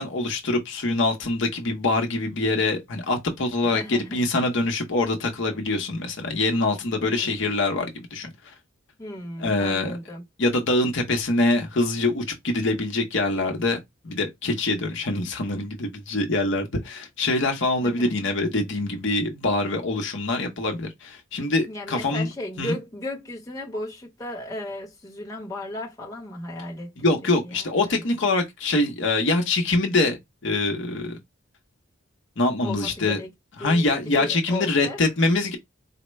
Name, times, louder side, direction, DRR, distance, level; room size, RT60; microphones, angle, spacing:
voice 1, 0.0-8.3 9.4-10.0 10.4-13.8 14.0-22.3 22.6-22.8 27.0-31.2 32.4-33.2 33.6-35.6, left 2 dB, 60° left, 0.8 m, -24 dB
voice 2, 3.6-4.2 7.0-7.5 9.0-10.3 17.8-18.1 21.6-28.1 32.6-33.3 33.6-35.0, left 1 dB, 15° left, 0.9 m, -35 dB
4.2 x 2.1 x 3.0 m
head